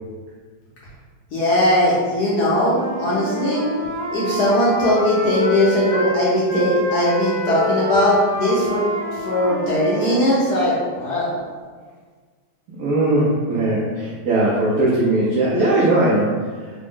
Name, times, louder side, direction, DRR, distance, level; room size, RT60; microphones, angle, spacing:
voice 1, 1.3-3.6 4.1-8.8 9.1-11.3, left 1 dB, 70° left, -7 dB, 1.0 m, -19 dB
Wind instrument woodwind instrument, 2.6-6.2 6.5-10.7, left 1 dB, 5° left, 0.7 m, -27 dB
voice 2, 12.7-16.4, right 2 dB, 90° right, -7 dB, 0.7 m, -19 dB
3.5 x 2.0 x 3.5 m, 1.6 s
omnidirectional pair, 2.3 m